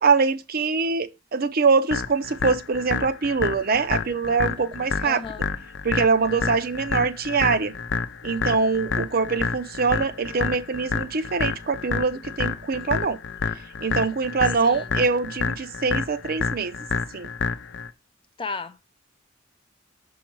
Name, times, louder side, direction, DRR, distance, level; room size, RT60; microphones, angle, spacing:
voice 1, 0.0-5.2 5.8-7.7 8.2-13.2 13.8-16.7 17.1-17.3, right 4 dB, 50° right, 0.6 m, -23 dB
sound 1, 1.9-17.9, left 5 dB, 65° left, 0.6 m, -29 dB
voice 2, 5.0-5.4 14.6-14.9 18.4-18.9, left 4 dB, 25° left, 0.5 m, -34 dB
6.2 x 4.7 x 4.6 m
head